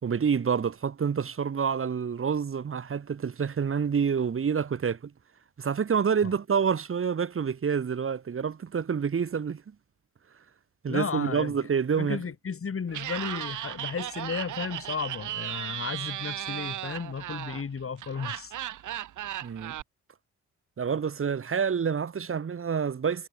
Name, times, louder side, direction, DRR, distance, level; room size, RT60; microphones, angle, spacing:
voice 1, 0.0-5.1 5.6-9.6 10.8-12.2 19.4-19.8 20.8-23.3, right 6 dB, 45° right, 2.0 m, -28 dB
voice 2, 10.9-11.5 12.0-18.5, left 6 dB, 45° left, 5.0 m, -34 dB
Laughter, 12.9-19.8, right 12 dB, 80° right, 2.9 m, -36 dB
supercardioid pair, 60°, 30 cm